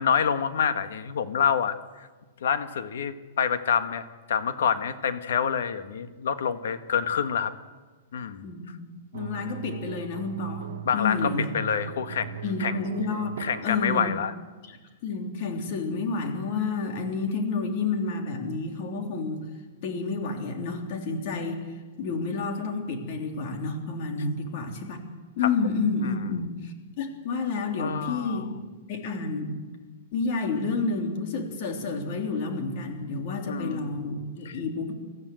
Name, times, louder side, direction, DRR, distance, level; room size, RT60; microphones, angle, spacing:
voice 1, 0.0-1.7 2.4-7.5 8.1-8.5 10.8-12.8 13.4-14.3 25.4-25.5 26.0-26.1 27.8-28.5 33.5-33.9 34.4-34.6, left 7 dB, 75° left, 10 dB, 1.6 m, -27 dB
voice 2, 8.4-8.9 9.1-11.5 12.4-14.1 14.6-14.8 15.0-19.4 19.8-21.7 22.0-25.0 25.4-28.5 28.9-29.6 30.1-34.9, left 4 dB, 40° left, 3 dB, 3.3 m, -30 dB
sound 1, 9.1-14.0, right 8 dB, 80° right, 1.0 m, -39 dB
24.5 x 14.5 x 7.8 m, 1.3 s
hypercardioid pair, 170°, 0 cm